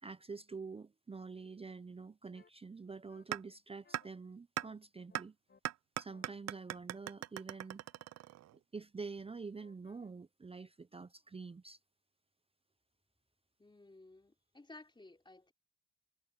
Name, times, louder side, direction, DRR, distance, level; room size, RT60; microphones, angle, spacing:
voice 1, 0.0-5.4 6.0-7.8 8.7-11.8, right 4 dB, 20° right, 0.6 m, -47 dB
sound 1, 2.3-2.5 3.1-3.2 3.8-4.1 4.6-4.7 5.1-5.6 6.1-8.3 9.6-10.1, left 5 dB, 35° left, 4.1 m, -69 dB
sound 2, 3.3-3.4 3.9-4.0 4.6-4.7 5.1-5.2 5.6-8.6, right 14 dB, 60° right, 0.5 m, -39 dB
voice 2, 13.6-15.5, left 2 dB, 15° left, 3.7 m, -56 dB
cardioid pair, 90°, 30 cm